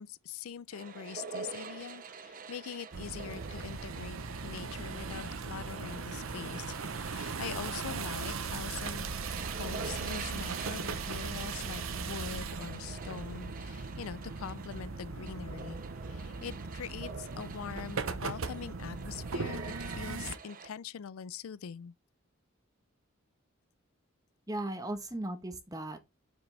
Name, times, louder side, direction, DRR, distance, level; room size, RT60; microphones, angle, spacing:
voice 1, 0.0-4.2 4.4-9.1 9.5-15.8 16.1-21.9, left 7 dB, 80° left, 0.4 m, -43 dB
sound 1, 0.7-20.7, right 5 dB, 40° right, 0.7 m, -47 dB
sound 2, 2.9-20.4, right 4 dB, 75° right, 0.8 m, -38 dB
voice 2, 24.5-26.0, right 1 dB, 15° right, 1.1 m, -37 dB
7.4 x 6.0 x 3.3 m
head